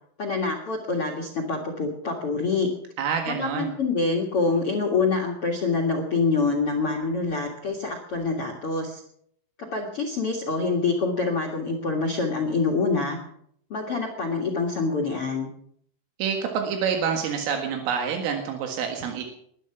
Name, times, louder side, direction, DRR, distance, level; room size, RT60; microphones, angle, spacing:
voice 1, 0.2-2.7 3.3-9.0 9.6-13.2 13.7-15.5, left 4 dB, 60° left, 4 dB, 1.4 m, -26 dB
voice 2, 3.0-3.7 16.2-19.2, right 7 dB, 85° right, 3 dB, 4.4 m, -27 dB
20.5 x 12.0 x 5.9 m, 0.68 s
omnidirectional pair, 5.7 m